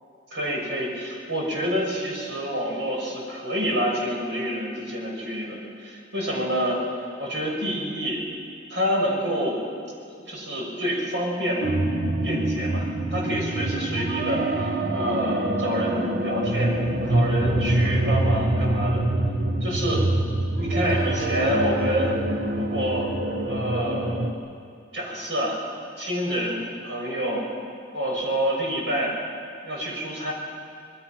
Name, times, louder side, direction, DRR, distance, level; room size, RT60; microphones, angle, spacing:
voice 1, 0.3-6.8 7.2-8.2 8.7-9.6 10.3-11.7 12.2-16.7 17.1-19.0 19.6-20.1 20.6-22.1 22.5-23.1 23.5-24.4 24.9-25.6 26.0-27.5 27.9-29.2 29.6-30.3, equal, 75° right, -1 dB, 6.1 m, -27 dB
sound 1, 11.6-24.3, right 1 dB, 55° right, 1.3 m, -25 dB
26.0 x 21.0 x 6.0 m, 2.4 s
head